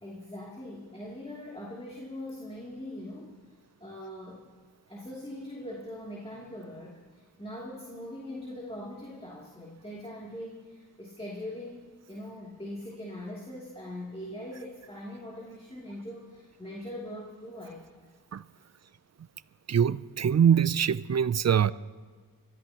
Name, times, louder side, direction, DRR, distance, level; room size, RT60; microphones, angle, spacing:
voice 1, 0.0-3.4 3.8-4.5 4.9-18.1 18.6-18.7, left 1 dB, 15° left, -5 dB, 2.8 m, -41 dB
voice 2, 19.7-21.7, right 8 dB, 45° right, 17 dB, 0.5 m, -23 dB
26.5 x 13.5 x 2.9 m, 1.5 s
cardioid pair, 65°, 38 cm